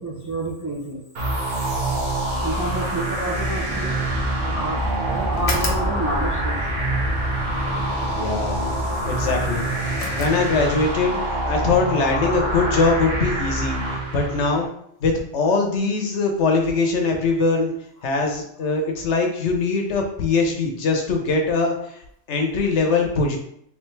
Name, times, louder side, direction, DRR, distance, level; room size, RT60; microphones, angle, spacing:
voice 1, 0.0-1.0 2.4-4.1 4.4-4.8 5.1-6.6, right 1 dB, 25° right, -4 dB, 0.4 m, -29 dB
sound 1, 1.2-14.7, right 1 dB, 65° right, 1.4 m, -26 dB
sound 2, 3.2-8.0, equal, 40° right, 1.1 m, -30 dB
sound 3, 5.4-11.0, left 2 dB, 40° left, 0.6 m, -33 dB
voice 2, 8.1-8.6 9.0-9.7 10.2-13.8 14.1-14.7 15.0-17.7 18.0-22.0 22.3-23.4, left 3 dB, 65° left, 2 dB, 1.0 m, -22 dB
3.5 x 3.3 x 3.2 m, 0.71 s
omnidirectional pair, 1.4 m